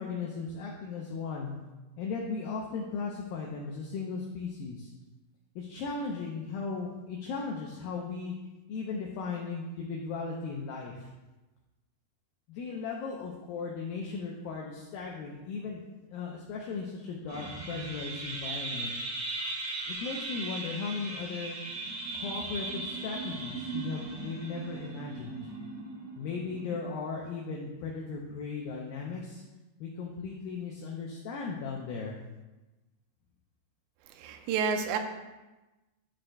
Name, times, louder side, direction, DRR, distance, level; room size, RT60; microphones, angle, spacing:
voice 1, 0.0-1.5 2.0-4.9 5.6-8.3 8.7-11.0 12.5-15.8 16.1-18.9 19.9-21.6 22.1-25.5 26.2-29.4 29.8-32.1, left 4 dB, 85° left, -1 dB, 2.0 m, -37 dB
sound 1, 17.3-27.0, right 3 dB, 65° right, 4.2 m, -38 dB
voice 2, 34.1-35.0, right 6 dB, 85° right, 6 dB, 2.9 m, -29 dB
11.0 x 6.3 x 2.2 m, 1.1 s
omnidirectional pair, 4.9 m